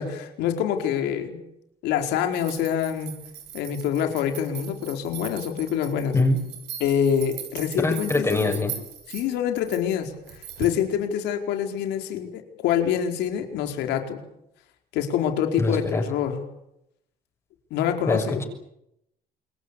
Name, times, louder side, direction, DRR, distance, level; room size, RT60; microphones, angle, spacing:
voice 1, 0.0-1.4 1.8-3.2 3.5-6.1 6.8-8.5 9.1-14.2 14.9-16.4 17.7-18.4, left 9 dB, 90° left, 5 dB, 4.7 m, -26 dB
sound 1, 2.3-10.8, right 9 dB, 80° right, 6.6 m, -40 dB
voice 2, 7.8-8.7 15.6-16.0 18.1-18.4, left 2 dB, 15° left, 2 dB, 6.5 m, -23 dB
27.5 x 22.0 x 8.5 m, 0.79 s
cardioid pair, 110°, 17 cm